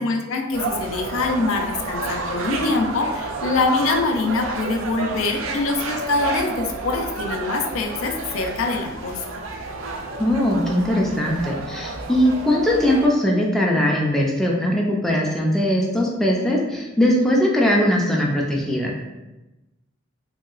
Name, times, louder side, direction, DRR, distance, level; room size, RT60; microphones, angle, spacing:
voice 1, 0.0-9.4, left 3 dB, 85° left, 4 dB, 0.4 m, -24 dB
sound 1, 0.5-13.1, right 3 dB, 75° right, 0.4 m, -30 dB
voice 2, 10.2-18.9, equal, ahead, -3 dB, 0.3 m, -20 dB
3.0 x 2.7 x 2.3 m, 1.0 s
head